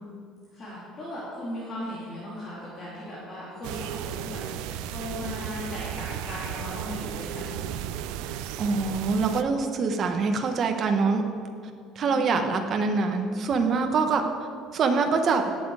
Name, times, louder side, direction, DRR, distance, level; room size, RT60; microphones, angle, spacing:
voice 1, 0.5-7.7 12.1-12.6 15.4-15.5, left 1 dB, 30° left, -9 dB, 2.9 m, -37 dB
sound 1, 3.6-9.4, right 11 dB, 85° right, 0.5 m, -35 dB
voice 2, 8.6-11.2 11.9-14.2 14.7-15.4, right 4 dB, 35° right, 5 dB, 1.1 m, -24 dB
17.5 x 7.7 x 4.8 m, 2.2 s
cardioid pair, 165°, 0 cm